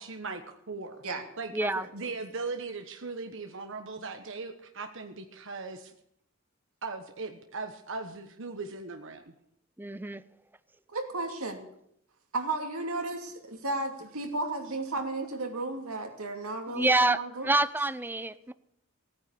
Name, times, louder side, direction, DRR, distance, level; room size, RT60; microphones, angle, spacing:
voice 1, 0.0-1.0 1.4-1.5 1.9-5.9 6.8-9.2, right 3 dB, 60° right, 1.2 m, -38 dB
voice 2, 1.5-1.9 9.8-10.2 16.7-18.5, right 2 dB, 10° right, 0.5 m, -27 dB
voice 3, 10.9-11.6 12.3-17.5, right 2 dB, 85° right, 2.7 m, -34 dB
16.0 x 9.6 x 8.4 m
head